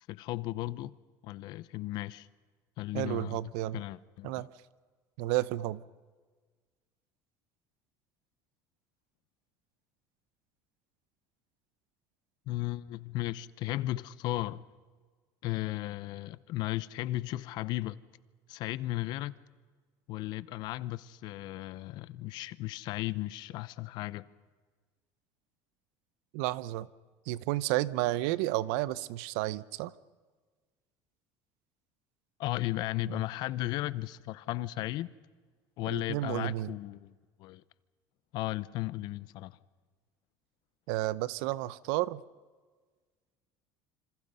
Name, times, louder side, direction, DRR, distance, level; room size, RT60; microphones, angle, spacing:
voice 1, 0.1-0.9 1.2-2.3 2.8-3.4 3.7-4.3 12.5-14.7 15.4-18.0 18.5-19.3 20.1-24.3 32.4-35.1 35.8-37.1 37.4-37.6 38.3-39.6, left 16 dB, 55° left, 0.8 m, -35 dB
voice 2, 2.9-3.8 4.2-4.5 5.2-5.8 26.3-26.9 27.3-29.9 33.0-33.2 35.9-36.7 40.9-42.2, right 16 dB, 80° right, 0.8 m, -31 dB
27.0 x 26.5 x 5.5 m
cardioid pair, 155°, 9 cm